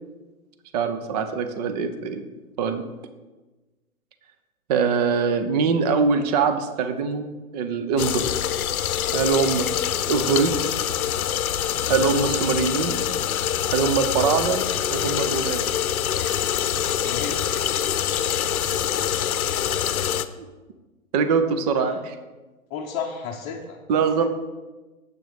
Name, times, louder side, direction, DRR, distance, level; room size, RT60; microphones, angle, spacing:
voice 1, 0.7-2.2 2.6-2.8 4.7-7.3 7.5-8.2 9.1-9.8 10.1-10.5 11.9-13.0 13.7-14.6 14.9-15.7 20.4-20.5 21.1-22.1 23.9-24.3, right 5 dB, 30° right, 9 dB, 0.7 m, -23 dB
sound 1, 8.0-20.3, left 10 dB, 75° left, 0.8 m, -25 dB
voice 2, 17.0-17.4 21.8-22.0 22.7-23.8, left 6 dB, 25° left, -2 dB, 0.9 m, -33 dB
9.1 x 7.8 x 5.2 m, 1.2 s
hypercardioid pair, 145°, 43 cm